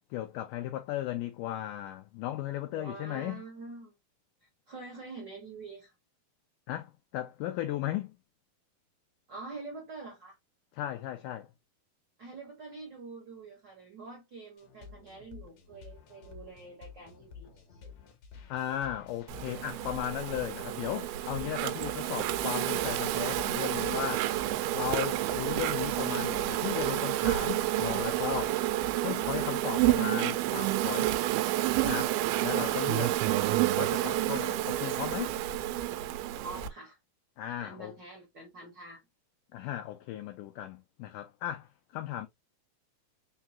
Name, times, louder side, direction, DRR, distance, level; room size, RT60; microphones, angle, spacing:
voice 1, 0.1-3.4 6.7-8.2 10.7-11.5 18.5-24.3 24.7-28.6 29.0-31.1 31.8-32.2 32.4-33.2 33.8-35.4 37.4-38.0 39.5-42.3, left 13 dB, 90° left, 1.8 m, -36 dB
voice 2, 2.7-3.9 4.7-5.9 9.3-10.4 12.2-17.9 36.3-37.0 37.6-39.0, right 3 dB, 65° right, 1.0 m, -46 dB
sound 1, 14.6-30.1, left 5 dB, 70° left, 1.7 m, -50 dB
Insect, 19.3-36.7, right 15 dB, 85° right, 2.4 m, -29 dB
5.6 x 2.3 x 2.8 m
omnidirectional pair, 4.3 m